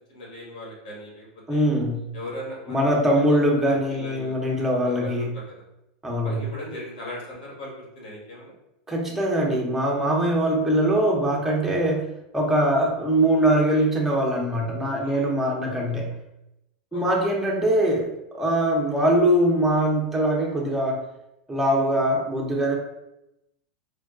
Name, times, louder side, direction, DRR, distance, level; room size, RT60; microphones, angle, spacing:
voice 1, 0.1-1.7 2.1-2.9 3.1-3.4 3.6-5.5 6.2-8.5 13.7-13.9 15.0-15.3 16.9-17.3 21.7-21.9, left 1 dB, 75° left, -4 dB, 1.4 m, -39 dB
voice 2, 1.5-2.1 2.7-5.3 6.0-6.4 8.9-12.1 12.3-16.1 16.9-21.0 21.5-22.8, right 1 dB, 5° right, -2 dB, 0.7 m, -22 dB
3.6 x 2.2 x 2.3 m, 0.87 s
supercardioid pair, 125°, 4 cm